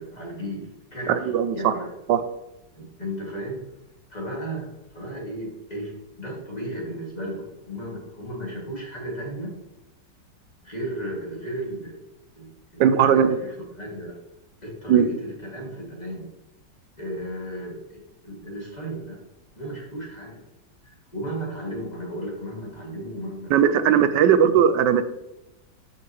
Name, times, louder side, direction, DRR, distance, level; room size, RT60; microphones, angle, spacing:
voice 1, 0.0-1.9 2.7-3.7 4.1-9.6 10.6-12.0 12.3-14.2 14.6-16.3 17.0-19.2 19.6-20.4 20.8-23.5 23.8-24.3, right 1 dB, 25° left, -4 dB, 2.4 m, -34 dB
voice 2, 1.1-1.7 2.1-2.2 12.8-13.4 14.9-15.0 23.5-25.0, right 8 dB, 85° right, 11 dB, 1.2 m, -18 dB
13.0 x 5.6 x 3.1 m, 0.90 s
omnidirectional pair, 1.9 m